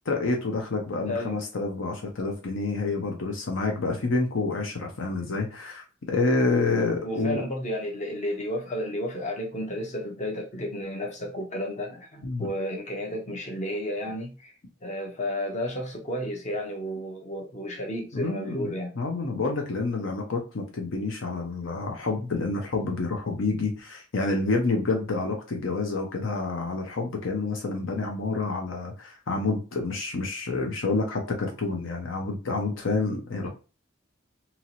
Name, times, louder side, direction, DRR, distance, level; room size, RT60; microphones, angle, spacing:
voice 1, 0.1-7.4 12.2-12.5 18.1-18.7 19.0-33.5, left 3 dB, 65° left, 0.6 m, -28 dB
voice 2, 1.1-1.4 7.0-14.5 14.8-18.9 33.4-33.5, equal, 35° left, 0.8 m, -32 dB
2.9 x 2.8 x 2.7 m
head